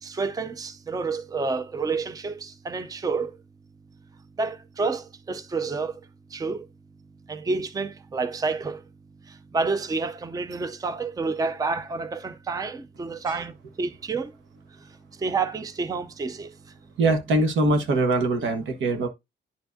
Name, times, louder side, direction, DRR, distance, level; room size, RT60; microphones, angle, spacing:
voice 1, 0.0-3.4 4.4-6.7 7.3-8.8 9.2-14.3 14.8-16.7, right 4 dB, 20° right, 0.5 m, -29 dB
voice 2, 17.0-19.1, right 2 dB, 75° right, 1.3 m, -23 dB
10.0 x 4.7 x 2.6 m
cardioid pair, 90°, 20 cm